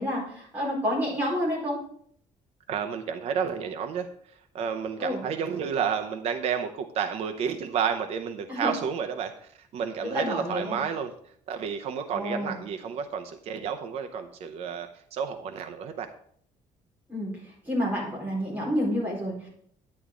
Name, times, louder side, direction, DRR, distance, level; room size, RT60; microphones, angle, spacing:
voice 1, 0.0-1.8 5.0-5.2 8.5-8.7 10.0-10.8 12.1-12.6 17.1-17.3 17.7-19.5, equal, 10° right, -4 dB, 4.3 m, -29 dB
voice 2, 2.7-11.1 11.5-16.1, right 7 dB, 50° right, 6 dB, 0.7 m, -31 dB
11.0 x 8.2 x 3.7 m, 0.63 s
cardioid pair, 170°, 14 cm